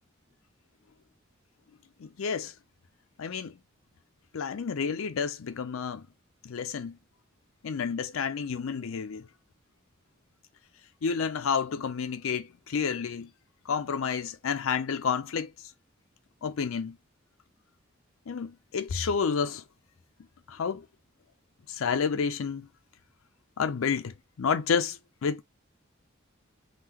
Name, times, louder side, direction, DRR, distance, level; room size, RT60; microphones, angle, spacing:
voice 1, 2.0-2.5 3.2-3.5 4.3-6.1 6.4-7.0 7.6-9.3 11.0-13.3 13.7-15.5 16.4-17.0 18.3-19.6 20.5-20.8 21.7-22.7 23.6-25.4, left 6 dB, 80° left, 0.5 m, -30 dB
3.7 x 2.3 x 2.9 m
head